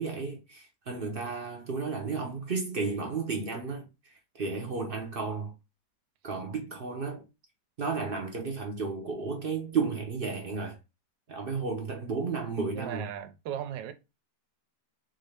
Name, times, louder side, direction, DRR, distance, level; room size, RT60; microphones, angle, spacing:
voice 1, 0.0-5.5 6.2-7.3 7.8-10.8 11.3-13.1, right 4 dB, 55° right, 0.6 m, -33 dB
voice 2, 12.7-13.9, right 10 dB, 85° right, 1.2 m, -37 dB
3.9 x 2.6 x 3.2 m
omnidirectional pair, 1.9 m